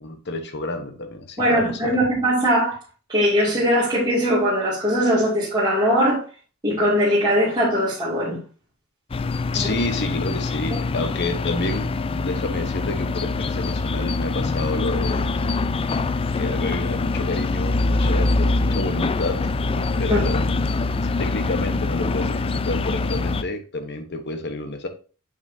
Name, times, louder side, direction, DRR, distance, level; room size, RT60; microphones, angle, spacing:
voice 1, 0.0-2.0 9.5-15.3 16.4-20.5 21.0-24.9, left 2 dB, 55° left, 1.1 m, -29 dB
voice 2, 1.4-2.8 3.1-6.2 6.6-8.4 10.7-10.8 20.1-20.2, equal, 20° right, 2.3 m, -20 dB
sound 1, 9.1-23.4, left 3 dB, 25° left, 0.3 m, -24 dB
7.2 x 6.3 x 2.7 m
head